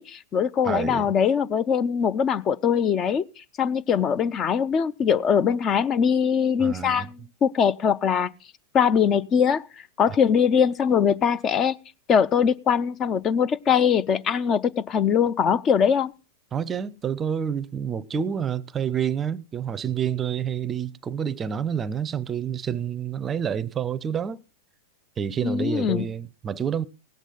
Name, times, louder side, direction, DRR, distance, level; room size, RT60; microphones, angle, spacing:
voice 1, 0.0-3.2 3.6-8.3 8.7-9.6 10.0-11.8 12.1-16.1 25.4-26.0, left 7 dB, 35° left, 0.5 m, -22 dB
voice 2, 0.6-1.1 6.6-7.1 10.1-10.2 16.5-24.4 25.2-26.8, right 8 dB, 25° right, 0.5 m, -28 dB
17.5 x 8.1 x 4.0 m
hypercardioid pair, 105°, 0 cm